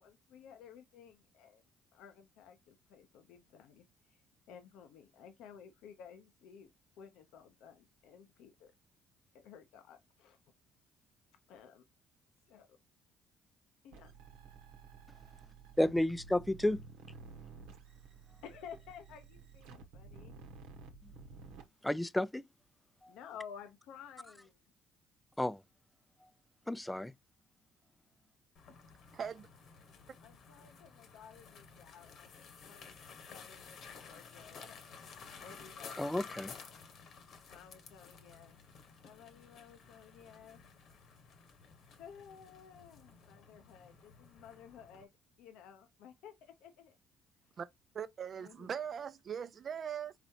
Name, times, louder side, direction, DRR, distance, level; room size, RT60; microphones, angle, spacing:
voice 1, 0.0-1.6 1.9-4.2 4.5-8.7 9.3-10.4 11.5-11.8 12.5-12.8 13.8-14.1 18.4-20.3 23.1-24.6 30.2-36.1 37.5-38.6 39.0-40.6 41.1-41.2 42.0-45.1 45.4-47.0 48.4-48.7, left 7 dB, 80° left, 0.8 m, -54 dB
sound 1, 13.9-21.6, right 4 dB, 85° right, 1.0 m, -53 dB
voice 2, 15.8-16.8 21.8-22.4 23.0-23.1 25.4-25.6 26.7-27.1 36.0-36.6, left 1 dB, 10° left, 0.4 m, -32 dB
sound 2, 28.5-45.0, left 5 dB, 65° left, 1.3 m, -53 dB
voice 3, 29.1-29.5 47.6-47.7 47.9-50.1, right 7 dB, 45° right, 0.5 m, -40 dB
4.2 x 4.1 x 2.9 m
supercardioid pair, 85°, 0 cm